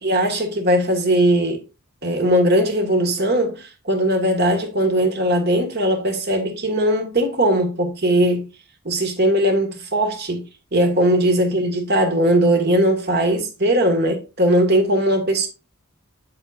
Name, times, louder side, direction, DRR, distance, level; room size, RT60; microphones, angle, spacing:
voice 1, 0.0-1.6 2.0-8.5 8.8-10.5 10.7-15.5, right 1 dB, 50° right, 1.7 m, -19 dB
8.1 x 7.8 x 2.5 m
head